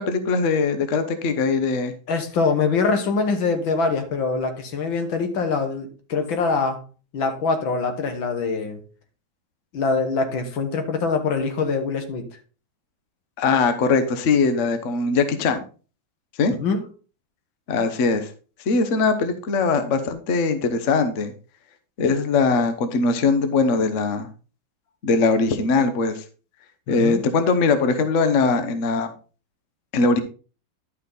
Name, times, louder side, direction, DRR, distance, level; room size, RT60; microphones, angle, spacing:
voice 1, 0.0-1.9 13.4-15.6 16.4-16.5 17.7-18.3 18.7-21.3 22.0-24.3 25.0-26.2 26.9-29.1 29.9-30.2, left 4 dB, 45° left, 9 dB, 1.2 m, -21 dB
voice 2, 2.1-6.8 7.1-8.8 9.7-12.3 16.6-16.8 26.9-27.2, left 4 dB, 80° left, 7 dB, 2.1 m, -24 dB
11.0 x 5.6 x 4.0 m, 0.36 s
omnidirectional pair, 2.1 m